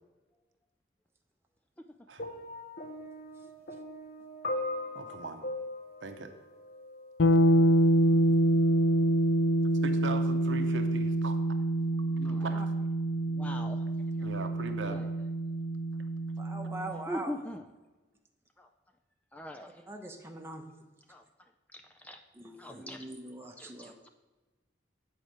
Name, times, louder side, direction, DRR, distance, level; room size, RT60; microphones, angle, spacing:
sound 1, 2.2-7.3 8.2-8.4, left 1 dB, 55° left, 0.9 m, -39 dB
voice 1, 4.9-5.5 6.0-6.3 9.6-11.4 12.4-12.6 14.2-15.3, right 3 dB, 75° right, 7 dB, 0.8 m, -39 dB
sound 2, 7.2-17.0, right 1 dB, 80° left, 0.5 m, -26 dB
voice 2, 12.1-12.5 13.3-13.8 14.2-14.3 14.9-15.1 17.1-17.7 18.6-18.7 19.3-19.8 21.1-21.2 21.7-22.2 22.6-23.1 23.6-24.1, left 1 dB, 10° left, 5 dB, 0.4 m, -41 dB
voice 3, 16.4-17.3 19.9-20.6 22.4-23.9, right 1 dB, 15° right, 2 dB, 0.9 m, -42 dB
9.0 x 4.6 x 6.4 m, 1.2 s
head